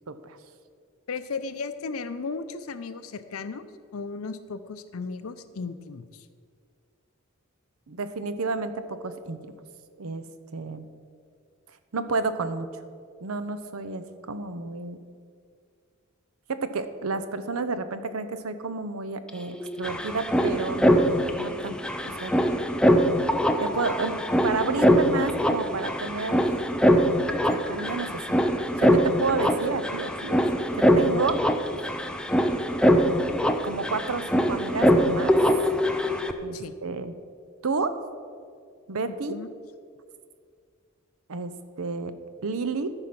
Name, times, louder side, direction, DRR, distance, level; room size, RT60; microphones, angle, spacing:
voice 1, 0.1-0.4 7.9-9.4 10.0-10.2 10.5-10.8 11.9-12.7 13.2-15.0 16.5-21.0 21.4-21.8 22.2-22.3 23.6-26.4 27.5-28.2 28.8-31.4 33.6-35.3 36.4-37.1 37.6-38.0 38.9-39.3 41.3-41.5 41.8-42.1 42.4-42.9, right 4 dB, 85° right, 11 dB, 0.7 m, -30 dB
voice 2, 1.1-3.6 3.9-6.3 36.5-36.8 39.1-39.5, left 4 dB, 85° left, 12 dB, 0.6 m, -35 dB
sound 1, 19.3-19.4 19.5-36.3, equal, 5° left, 0.5 m, -23 dB
13.5 x 4.9 x 5.9 m, 2.1 s
head